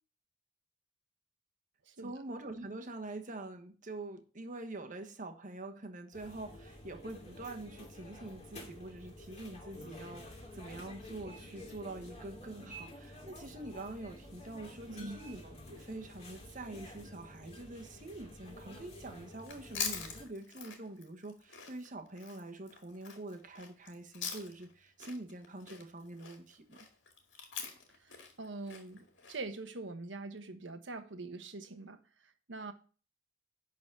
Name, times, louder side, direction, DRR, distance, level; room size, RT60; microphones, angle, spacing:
voice 1, 2.0-26.9, right 2 dB, 45° right, 1.3 m, -45 dB
sound 1, 6.1-20.2, left 1 dB, 35° left, 3.0 m, -50 dB
voice 2, 14.9-15.2 28.0-32.7, right 3 dB, 90° right, 1.2 m, -44 dB
Chewing mastication, 19.4-24.7 25.0-29.4, left 6 dB, 80° left, 2.1 m, -44 dB
11.0 x 4.1 x 6.7 m
head